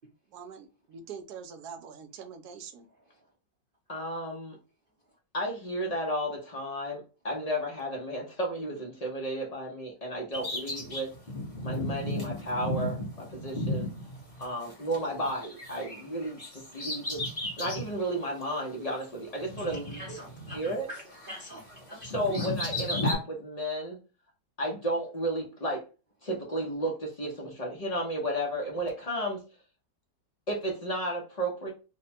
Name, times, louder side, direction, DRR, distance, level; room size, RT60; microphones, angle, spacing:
voice 1, 0.3-2.9, right 6 dB, 70° right, 1.1 m, -44 dB
voice 2, 3.9-4.6 5.3-11.1 11.6-13.9 14.4-17.2 17.6-20.1 20.5-20.9 21.9-24.0 24.6-25.8 26.2-29.4 30.5-31.7, right 1 dB, 65° left, 0.4 m, -33 dB
Bird vocalization bird call bird song, 10.3-15.0 15.2-17.9 18.4-18.5 19.4-20.8 21.1-23.1, left 1 dB, 25° left, 1.0 m, -34 dB
voice 3, 19.6-21.6 21.9-22.5, equal, 45° right, 0.7 m, -44 dB
3.3 x 2.2 x 4.1 m
omnidirectional pair, 1.9 m